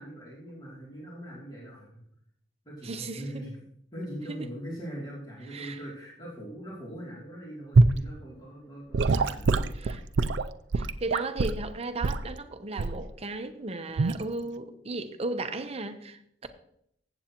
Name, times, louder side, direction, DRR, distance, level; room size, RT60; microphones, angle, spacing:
voice 1, 0.0-2.0 2.6-3.5 3.9-10.0, equal, 25° left, 2.7 m, -41 dB
voice 2, 2.8-3.5 4.3-4.5 5.5-5.8 9.7-10.0 10.7-16.5, right 2 dB, 35° right, 0.8 m, -35 dB
Gurgling / Sink (filling or washing) / Liquid, 7.8-8.0 8.9-11.6 12.0-12.3 12.8-13.1 14.0-14.2, right 3 dB, 85° right, 0.5 m, -24 dB
14.5 x 7.9 x 3.0 m
head